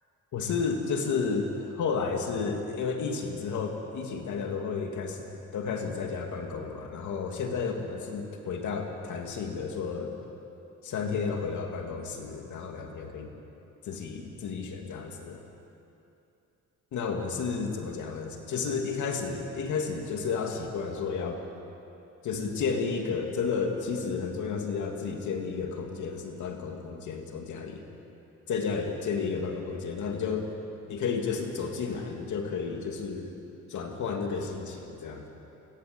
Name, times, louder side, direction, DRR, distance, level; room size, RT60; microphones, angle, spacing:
voice 1, 0.3-5.3 5.5-10.1 10.8-13.3 13.8-15.4 16.9-21.4 22.2-27.8 28.5-30.4 30.9-33.3 33.7-35.3, left 5 dB, 75° left, 3 dB, 2.8 m, -32 dB
21.5 x 16.5 x 8.2 m, 2.8 s
cardioid pair, 90°, 30 cm